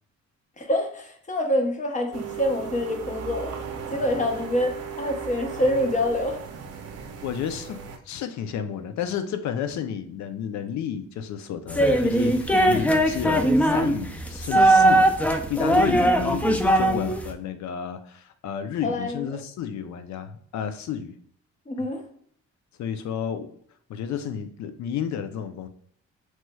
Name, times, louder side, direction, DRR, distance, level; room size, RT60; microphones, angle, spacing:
voice 1, 0.6-3.6 3.9-6.4 15.9-16.1 18.8-19.3 21.7-22.0, left 1 dB, 25° left, 3 dB, 0.8 m, -26 dB
sound 1, 2.1-8.0, right 7 dB, 55° right, 0.6 m, -36 dB
voice 2, 7.2-15.1 15.5-21.1 22.8-23.5 23.9-25.7, left 8 dB, 70° left, 9 dB, 0.5 m, -31 dB
sound 2, 11.7-17.3, right 1 dB, 5° left, 0.3 m, -20 dB
3.1 x 3.0 x 2.2 m, 0.63 s
cardioid pair, 90°, 30 cm